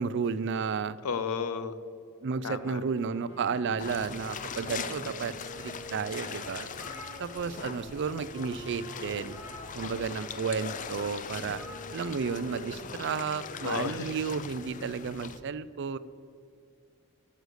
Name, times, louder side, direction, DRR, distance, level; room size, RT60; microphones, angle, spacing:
voice 1, 0.0-1.0 2.2-6.7 7.2-9.4 9.7-11.6 11.9-16.0, right 5 dB, 55° right, 16 dB, 0.4 m, -32 dB
voice 2, 1.0-1.8 2.4-2.8 13.6-14.1, left 6 dB, 85° left, 13 dB, 0.6 m, -32 dB
sound 1, 2.5-3.8 4.2-5.1 5.7-5.8 6.2-6.3 6.5-7.8 8.1-8.3 9.2-10.3 11.5-12.3, left 1 dB, 10° right, 2.0 m, -51 dB
Wind instrument woodwind instrument, 3.0-14.7, right 1 dB, 60° left, 2.8 m, -48 dB
sound 2, 3.8-15.4, left 6 dB, 35° left, 0.5 m, -41 dB
11.5 x 6.5 x 6.6 m, 2.3 s
head